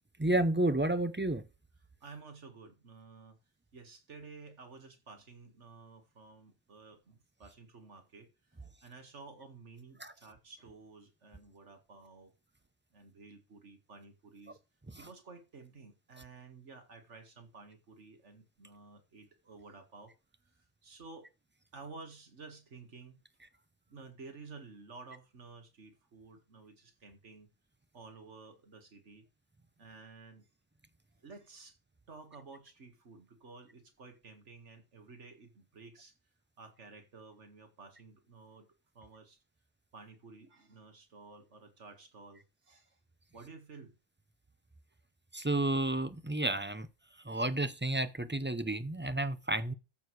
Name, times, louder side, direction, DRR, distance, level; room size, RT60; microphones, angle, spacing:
voice 1, 0.2-1.4 10.0-10.1 45.3-46.9 47.2-49.7, right 1 dB, 15° right, 0.4 m, -31 dB
voice 2, 2.0-3.4 3.7-12.3 12.9-14.6 15.0-20.1 20.4-21.3 21.7-23.2 23.9-27.5 27.9-29.3 29.8-30.5 31.2-31.8 32.1-36.1 36.6-38.7 38.9-39.4 39.9-43.0 43.3-43.9, right 4 dB, 80° right, 2.2 m, -53 dB
14.0 x 6.3 x 4.8 m
omnidirectional pair, 1.2 m